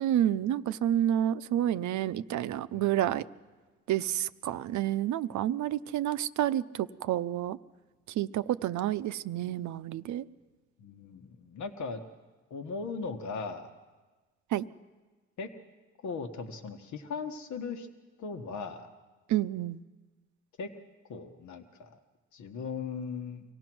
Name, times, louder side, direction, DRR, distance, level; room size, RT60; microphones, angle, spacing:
voice 1, 0.0-3.2 3.9-7.6 8.2-10.2 14.5-14.6 19.3-19.8, right 12 dB, 70° right, 13 dB, 0.7 m, -29 dB
voice 2, 2.7-3.1 10.8-12.0 12.5-13.7 15.4-15.5 16.0-17.9 18.2-18.9 20.6-20.7 21.1-22.0 22.3-23.4, left 5 dB, 70° left, 6 dB, 1.4 m, -38 dB
25.0 x 17.0 x 6.1 m, 1.3 s
cardioid pair, 90°, 30 cm